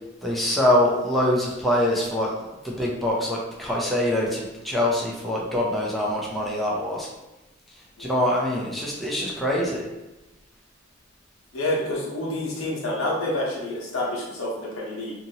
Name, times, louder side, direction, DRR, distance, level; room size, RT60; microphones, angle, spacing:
voice 1, 0.2-2.3 2.6-7.1 8.0-9.9, left 1 dB, ahead, -4 dB, 0.4 m, -24 dB
voice 2, 11.5-15.1, left 1 dB, 90° left, -4 dB, 0.9 m, -28 dB
2.7 x 2.7 x 2.7 m, 1.0 s
head